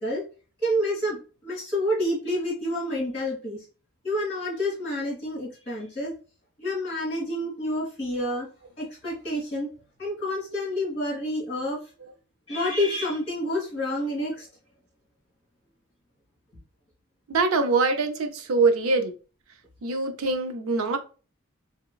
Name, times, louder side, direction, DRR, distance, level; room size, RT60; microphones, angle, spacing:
voice 1, 0.6-3.6 4.0-6.1 6.6-8.5 8.8-9.7 10.0-11.8 12.5-14.5, left 1 dB, 30° left, 1.7 m, -28 dB
voice 2, 17.3-19.1 19.8-21.0, right 3 dB, 80° right, 0.5 m, -23 dB
3.1 x 2.9 x 2.2 m
head